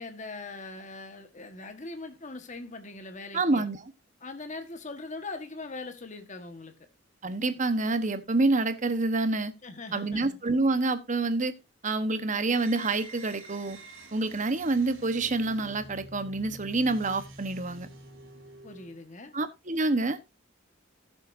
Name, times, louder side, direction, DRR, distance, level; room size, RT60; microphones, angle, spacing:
voice 1, 0.0-3.7 4.2-6.7 9.6-10.4 18.6-19.3, left 3 dB, 40° left, 1.4 m, -41 dB
voice 2, 3.3-3.8 7.2-9.5 9.9-11.5 11.8-13.8 14.1-17.9 19.3-20.2, right 3 dB, 40° right, 1.1 m, -27 dB
sound 1, 12.4-19.0, right 1 dB, 85° right, 2.9 m, -48 dB
17.0 x 7.3 x 2.6 m
head